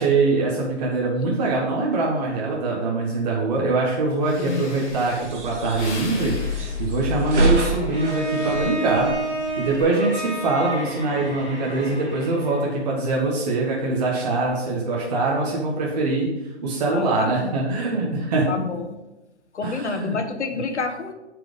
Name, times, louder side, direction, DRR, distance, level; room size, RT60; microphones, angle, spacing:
voice 1, 0.0-9.1 9.6-16.3 16.6-18.5 19.6-20.2, right 3 dB, 35° right, -3 dB, 1.4 m, -23 dB
Breathing, 3.9-4.0 4.2-8.5 8.9-9.3, left 3 dB, 35° left, 3.1 m, -39 dB
sound 1, 4.8-9.8, right 1 dB, 80° right, 2.0 m, -27 dB
Bowed string instrument, 7.9-12.8, right 1 dB, 5° right, 0.8 m, -30 dB
voice 2, 16.9-17.5 18.5-19.0 19.5-21.1, left 4 dB, 75° left, 6 dB, 1.3 m, -28 dB
7.6 x 5.0 x 5.1 m, 1.0 s
hypercardioid pair, 155°, 35 cm